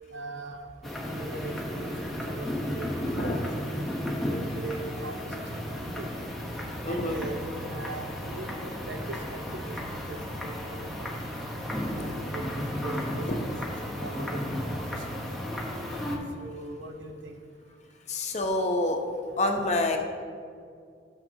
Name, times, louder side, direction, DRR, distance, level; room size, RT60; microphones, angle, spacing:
voice 1, 0.1-0.7 1.1-2.9 4.2-5.3 5.7-6.1 6.9-9.6 10.1-10.2 10.4-11.4 12.0-13.3 13.7-14.4 14.7-14.9 16.4-17.4, right 2 dB, 75° right, 5 dB, 0.7 m, -40 dB
sound 1, 0.8-16.2, equal, ahead, 0.9 m, -34 dB
voice 2, 6.8-7.2 13.3-13.4 18.1-19.0 19.4-20.0, left 2 dB, 40° left, 3 dB, 0.7 m, -27 dB
11.5 x 6.4 x 2.7 m, 2.3 s
head